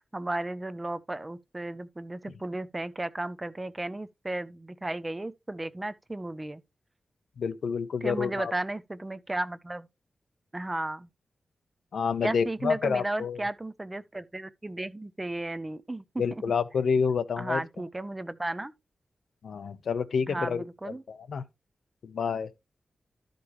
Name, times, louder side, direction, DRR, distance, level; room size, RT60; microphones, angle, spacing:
voice 1, 0.0-6.6 8.0-9.9 10.5-11.1 12.2-16.4 17.4-18.7 20.3-21.0, right 2 dB, 15° right, 0.5 m, -34 dB
voice 2, 7.4-8.5 11.9-13.4 16.2-17.6 19.4-20.6 21.1-21.4 22.0-22.5, left 6 dB, 90° left, 0.8 m, -28 dB
13.0 x 5.2 x 3.1 m
wide cardioid pair, 165°, 0 cm